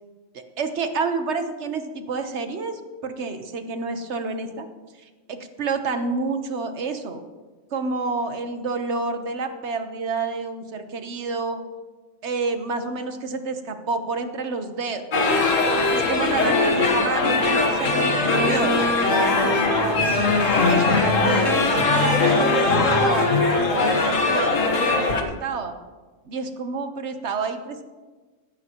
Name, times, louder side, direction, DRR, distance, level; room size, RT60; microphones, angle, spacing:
voice 1, 0.3-4.7 5.3-7.2 7.7-11.6 12.2-15.0 15.9-18.7 19.1-20.3 20.7-25.8 26.2-27.8, right 4 dB, 55° right, 7 dB, 1.3 m, -29 dB
sound 1, 15.1-25.2, left 3 dB, 65° left, 1.7 m, -20 dB
16.0 x 15.0 x 3.0 m, 1.3 s
omnidirectional pair, 1.4 m